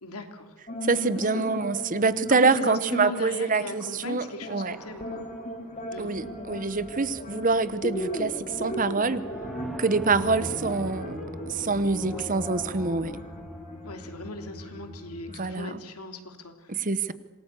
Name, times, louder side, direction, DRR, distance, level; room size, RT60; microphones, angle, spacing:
voice 1, 0.0-0.5 1.1-1.4 2.3-5.2 5.9-6.2 12.1-12.3 13.8-16.8, left 2 dB, 85° left, 6 dB, 3.1 m, -38 dB
sound 1, 0.7-15.5, equal, 35° left, 2.9 m, -38 dB
voice 2, 0.9-4.8 6.0-9.2 9.8-11.2 11.5-13.1 15.4-15.8 16.7-17.1, right 4 dB, 35° right, 14 dB, 1.0 m, -25 dB
sound 2, 4.7-14.7, equal, ahead, 1.9 m, -44 dB
27.0 x 19.0 x 8.4 m, 1.2 s
head